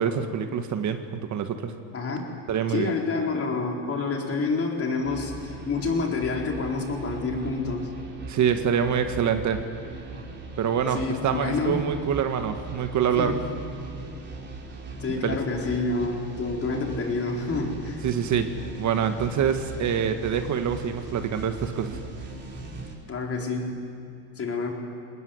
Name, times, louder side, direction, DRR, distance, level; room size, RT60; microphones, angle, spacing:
voice 1, 0.0-1.7 2.5-2.9 8.3-9.6 10.6-13.4 15.2-15.4 18.0-18.5 18.8-22.0, right 7 dB, 45° right, 7 dB, 1.7 m, -25 dB
voice 2, 1.9-2.3 2.7-7.9 10.9-11.9 13.2-13.4 15.0-18.0 23.1-23.8 24.4-24.7, left 3 dB, 35° left, 0 dB, 4.3 m, -28 dB
sound 1, 5.0-23.0, right 3 dB, 25° right, 4.3 m, -39 dB
21.5 x 19.5 x 9.5 m, 2.6 s
supercardioid pair, 100°, 40 cm